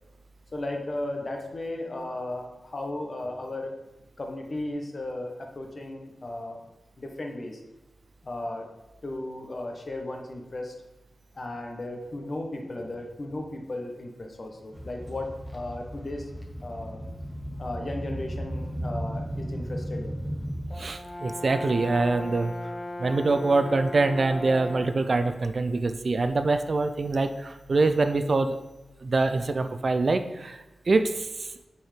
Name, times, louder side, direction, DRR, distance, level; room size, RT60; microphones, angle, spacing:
voice 1, 0.5-3.7 4.2-6.6 7.0-7.6 8.2-8.7 9.0-10.7 11.3-16.3 16.6-17.0 17.6-20.2, left 1 dB, 45° left, 2 dB, 1.1 m, -35 dB
sound 1, 14.7-21.0 21.5-21.7 22.6-22.7 23.5-23.6, equal, 5° right, 1.0 m, -35 dB
Brass instrument, 20.7-25.1, left 1 dB, 15° left, 0.5 m, -37 dB
voice 2, 20.8-22.5 23.0-28.5 29.0-31.5, right 3 dB, 50° right, 9 dB, 0.4 m, -25 dB
6.2 x 4.5 x 5.0 m, 1.0 s
wide cardioid pair, 75°, 0 cm